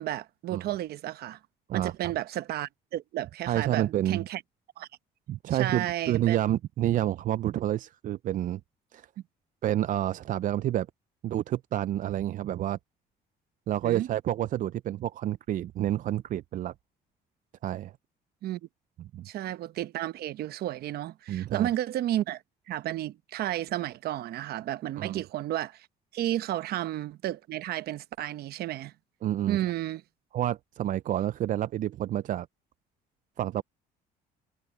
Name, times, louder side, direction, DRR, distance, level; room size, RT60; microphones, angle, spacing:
voice 1, 0.0-1.4 1.7-4.4 4.8-4.9 5.5-6.4 13.8-14.1 18.4-18.6 19.2-25.9 26.1-28.9 29.5-30.0, right 13 dB, 70° right, 1.0 m, -32 dB
voice 2, 3.5-4.3 5.3-8.6 8.9-9.1 9.6-10.9 11.2-12.8 13.7-16.7 17.6-17.9 19.0-19.3 21.3-21.7 25.0-25.2 29.2-29.6 30.3-32.5 33.4-33.6, right 12 dB, 50° right, 0.4 m, -29 dB
cardioid pair, 110°, 17 cm